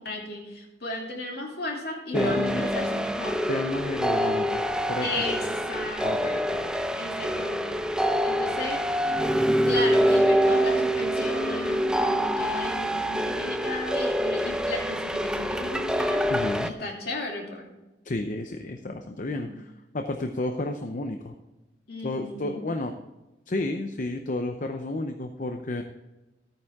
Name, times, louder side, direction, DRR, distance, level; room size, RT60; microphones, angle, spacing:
voice 1, 0.0-3.4 5.0-5.4 5.7-6.4 6.9-8.8 9.6-16.2 16.6-17.7 19.2-19.6 21.9-22.6, left 1 dB, 65° left, 0 dB, 2.8 m, -35 dB
voice 2, 2.1-2.7 3.5-5.2 6.0-6.7 16.3-16.7 18.0-21.3 22.0-23.0 23.5-25.8, left 2 dB, 50° left, 6 dB, 0.7 m, -31 dB
sound 1, 2.1-16.7, equal, 5° right, 0.6 m, -25 dB
13.5 x 9.2 x 3.6 m, 1.0 s
head